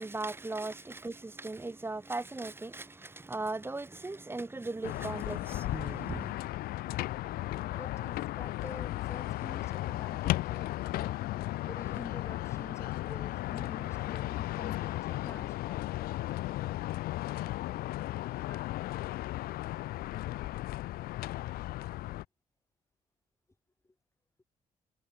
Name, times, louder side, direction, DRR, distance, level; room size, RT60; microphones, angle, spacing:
voice 1, 0.0-6.3, right 2 dB, 15° right, 0.6 m, -38 dB
sound 1, 4.8-22.2, left 16 dB, 60° left, 0.4 m, -35 dB
voice 2, 7.5-11.2 11.7-16.3, left 2 dB, 15° left, 2.3 m, -49 dB
hypercardioid pair, 45°, 18 cm